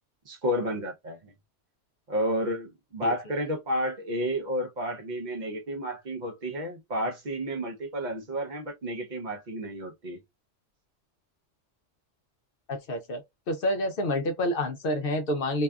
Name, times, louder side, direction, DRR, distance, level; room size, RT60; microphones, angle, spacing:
voice 1, 0.3-1.3 2.1-10.2, equal, 50° right, 0.6 m, -31 dB
voice 2, 12.7-13.2 13.5-15.6, left 1 dB, 60° left, 0.6 m, -28 dB
2.7 x 2.3 x 2.2 m
omnidirectional pair, 1.3 m